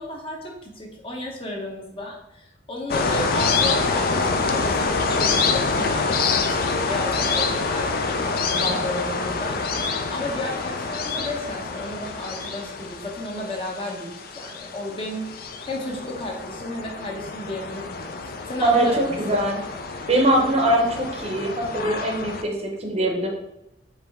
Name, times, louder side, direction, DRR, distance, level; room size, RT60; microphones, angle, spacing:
voice 1, 0.0-15.2 15.7-18.1 18.5-19.2, left 1 dB, 30° left, -1 dB, 0.8 m, -33 dB
sound 1, 2.9-22.4, left 4 dB, 50° left, 0.4 m, -26 dB
voice 2, 18.6-19.6 20.1-23.3, right 1 dB, 35° right, 1 dB, 0.7 m, -22 dB
4.8 x 3.1 x 3.5 m, 0.85 s
head